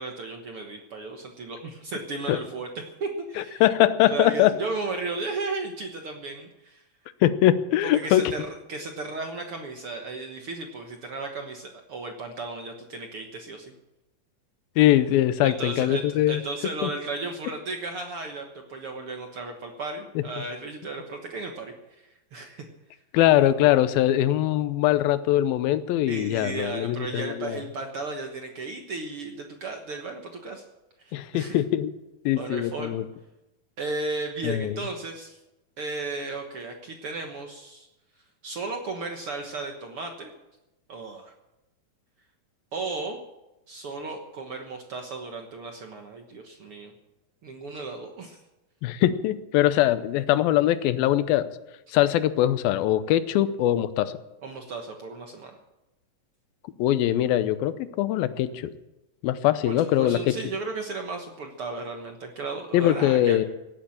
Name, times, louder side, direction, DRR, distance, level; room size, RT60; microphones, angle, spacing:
voice 1, 0.0-3.6 4.1-6.8 7.9-13.7 15.4-21.7 22.3-22.6 26.1-30.6 31.0-31.6 32.4-33.0 33.8-35.4 35.8-37.9 38.4-40.3 40.9-41.3 42.7-43.2 43.7-46.9 47.4-48.4 54.4-55.6 59.7-63.4, right 3 dB, 55° right, 3 dB, 1.6 m, -35 dB
voice 2, 3.6-4.5 7.2-8.2 14.8-16.4 16.8-16.9 20.2-20.3 23.1-27.6 31.1-31.9 32.3-33.1 34.4-34.8 48.8-51.5 51.9-54.1 56.8-58.7 59.2-60.2 62.7-63.5, left 13 dB, 85° left, 13 dB, 2.6 m, -22 dB
17.5 x 8.9 x 8.7 m, 0.97 s
omnidirectional pair, 4.1 m